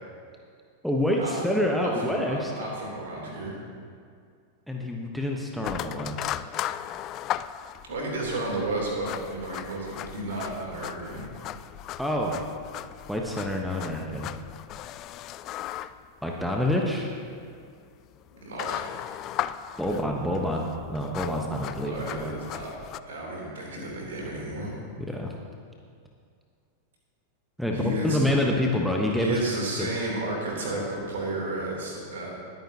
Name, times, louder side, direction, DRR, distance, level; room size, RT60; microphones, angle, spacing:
voice 1, 0.8-2.5 4.7-6.4 12.0-12.4 13.1-14.3 16.2-17.1 19.8-22.3 25.0-25.3 27.6-29.4 29.8-29.9, left 1 dB, ahead, 0 dB, 1.1 m, -27 dB
voice 2, 1.8-3.6 7.9-11.3 18.3-18.9 21.8-22.8 23.0-24.7 27.7-28.2 29.2-32.3, right 2 dB, 60° right, -2 dB, 3.2 m, -32 dB
sound 1, 5.6-23.0, left 13 dB, 35° left, 0.3 m, -37 dB
21.0 x 9.2 x 2.9 m, 2.2 s
figure-of-eight pair, 90°, 0 cm